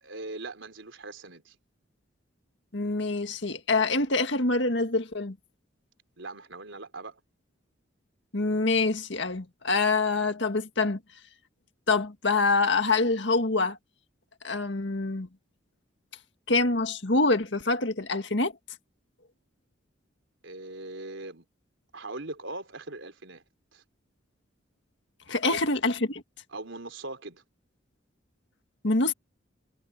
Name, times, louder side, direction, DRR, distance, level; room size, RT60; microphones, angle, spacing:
voice 1, 0.0-1.6 6.2-7.2 20.4-21.5 21.9-23.4 23.7-23.8 25.4-25.6 26.5-27.4, right 2 dB, 75° right, 3.8 m, -40 dB
voice 2, 2.7-5.4 8.3-11.0 11.9-13.8 14.4-15.3 16.5-18.5 25.3-26.2 28.8-29.1, left 3 dB, 60° left, 2.0 m, -25 dB
head